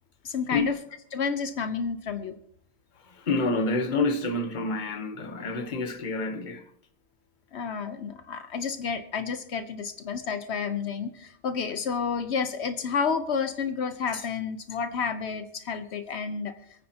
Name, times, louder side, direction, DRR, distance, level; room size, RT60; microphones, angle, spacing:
voice 1, 0.2-0.8 1.1-2.3 7.5-16.5, left 6 dB, 75° left, 1.1 m, -30 dB
voice 2, 3.1-6.6, left 3 dB, 45° left, 1.2 m, -28 dB
27.0 x 9.6 x 2.9 m
omnidirectional pair, 1.1 m